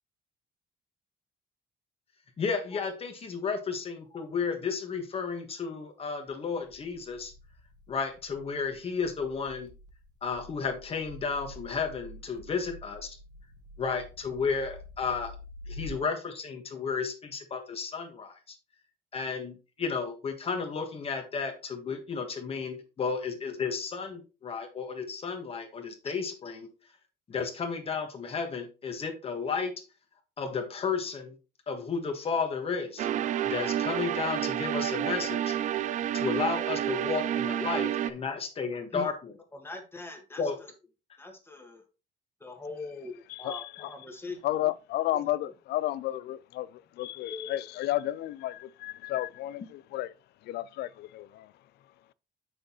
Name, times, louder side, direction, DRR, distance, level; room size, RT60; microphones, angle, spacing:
voice 1, 2.4-7.3 7.9-9.7 10.2-13.1 13.8-15.3 15.7-18.6 19.1-26.7 27.3-29.7 30.4-31.3 31.7-33.1 33.4-35.6 36.1-39.1 40.4-40.6, left 5 dB, 35° left, 1.5 m, -33 dB
sound 1, 6.7-15.9, left 1 dB, 25° right, 1.3 m, -48 dB
sound 2, 33.0-38.1, right 11 dB, 45° right, 0.4 m, -29 dB
voice 2, 39.5-40.7 41.2-41.8 42.4-44.5 45.1-45.5 47.3-47.6, left 3 dB, 15° left, 1.6 m, -42 dB
voice 3, 43.3-43.9 44.4-50.1 50.4-51.5, left 14 dB, 75° left, 0.5 m, -32 dB
7.6 x 6.4 x 3.0 m
cardioid pair, 145°, 17 cm